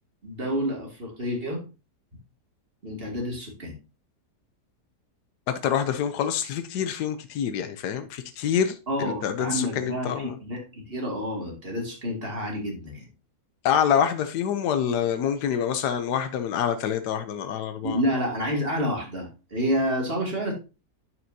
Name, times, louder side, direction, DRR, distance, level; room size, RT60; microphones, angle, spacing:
voice 1, 0.2-1.6 2.8-3.7 8.9-13.1 17.8-20.5, equal, 35° right, 2.6 m, -29 dB
voice 2, 5.5-10.4 13.6-18.0, left 8 dB, 90° left, 1.3 m, -26 dB
11.0 x 5.8 x 2.7 m
omnidirectional pair, 1.7 m